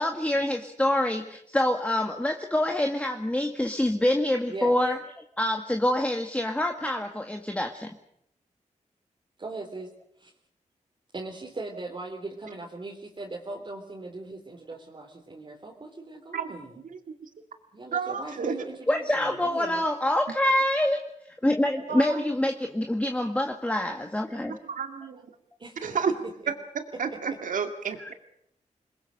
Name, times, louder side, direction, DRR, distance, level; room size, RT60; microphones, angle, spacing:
voice 1, 0.0-5.0 5.4-7.9 18.9-21.0 21.4-24.6 28.0-28.1, left 1 dB, 10° left, 4 dB, 1.8 m, -26 dB
voice 2, 9.4-9.9 10.2-10.3 11.1-16.8 17.7-19.8 25.6-26.2 26.4-26.5 27.1-27.4, right 3 dB, 40° right, -1 dB, 3.7 m, -39 dB
voice 3, 17.9-18.5 21.9-22.2 24.7-25.2 25.8-26.1 26.8-28.1, right 6 dB, 90° right, 6 dB, 2.3 m, -30 dB
28.0 x 21.5 x 6.6 m, 0.72 s
wide cardioid pair, 85°, 13 cm